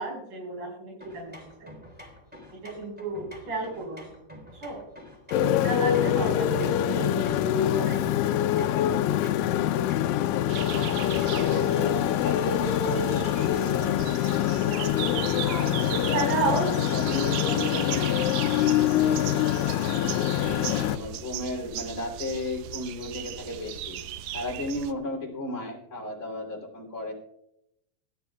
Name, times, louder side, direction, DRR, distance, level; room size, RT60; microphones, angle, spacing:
voice 1, 0.0-1.7 2.5-4.1 4.6-4.8 5.5-8.4 15.4-16.7 19.0-19.3, right 3 dB, 55° right, -3 dB, 6.1 m, -33 dB
sound 1, 1.0-11.5, equal, 5° right, 2.4 m, -48 dB
Motorcycle, 5.3-21.0, left 11 dB, 80° left, 2.1 m, -25 dB
sound 2, 10.5-24.9, right 11 dB, 80° right, 1.9 m, -37 dB
voice 2, 10.6-14.1 15.4-16.6 16.9-18.3 19.8-24.0 24.3-27.1, left 2 dB, 25° left, -1 dB, 3.2 m, -35 dB
22.0 x 12.5 x 2.3 m, 0.80 s
omnidirectional pair, 4.4 m